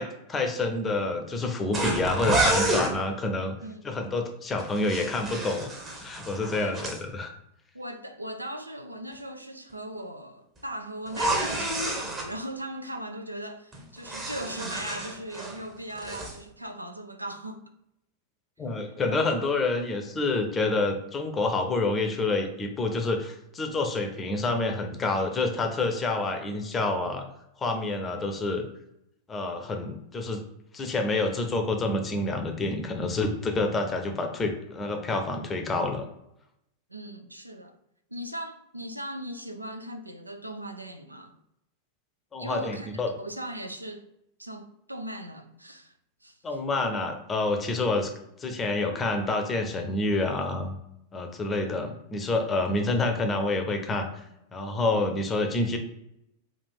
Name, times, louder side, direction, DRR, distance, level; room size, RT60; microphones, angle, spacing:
voice 1, 0.0-3.5 3.8-5.7 6.0-7.3 18.6-27.3 27.6-28.6 29.3-30.4 30.7-36.0 42.3-43.1 46.4-48.1 48.4-50.7 51.1-54.1 54.5-55.8, left 2 dB, 20° left, 0.6 m, -28 dB
sound 1, 1.7-2.9 4.6-7.0 11.1-12.3 13.7-15.6 15.9-16.4, right 2 dB, 25° right, 0.9 m, -29 dB
voice 2, 7.7-17.7 19.1-19.3 36.9-37.8 38.1-41.4 42.4-44.1 44.4-45.9 46.2-46.4, right 1 dB, 85° right, 0.4 m, -39 dB
3.5 x 2.4 x 4.4 m
figure-of-eight pair, 90°, 0 cm